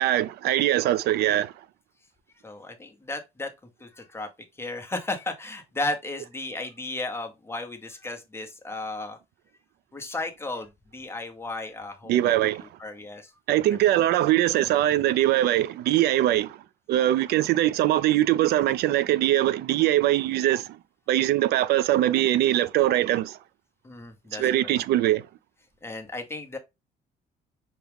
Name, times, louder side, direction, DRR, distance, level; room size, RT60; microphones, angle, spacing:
voice 1, 0.0-1.5 12.1-12.7 13.5-16.6 16.9-20.8 21.1-23.4 24.3-25.3, right 13 dB, 70° right, 0.4 m, -22 dB
voice 2, 2.4-3.5 3.8-4.3 4.6-9.2 9.9-12.3 12.8-13.3 23.8-24.8 25.8-26.6, left 2 dB, 15° left, 0.9 m, -34 dB
5.8 x 2.3 x 3.4 m
cardioid pair, 110°, 17 cm